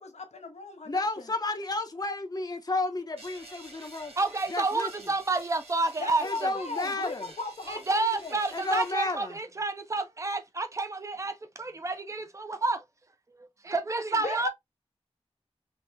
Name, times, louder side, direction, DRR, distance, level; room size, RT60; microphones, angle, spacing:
voice 1, 0.0-1.1 6.0-8.4 14.2-14.5, left 3 dB, 85° left, 0.7 m, -37 dB
voice 2, 0.9-4.1 4.5-4.9 6.2-7.3 8.5-9.4, left 2 dB, 35° left, 0.6 m, -32 dB
sound 1, 3.2-8.9, right 2 dB, 65° right, 1.2 m, -50 dB
voice 3, 4.2-6.5 7.7-12.8 13.6-14.5, right 3 dB, 25° right, 0.5 m, -29 dB
3.4 x 2.1 x 2.6 m
wide cardioid pair, 65°, 11 cm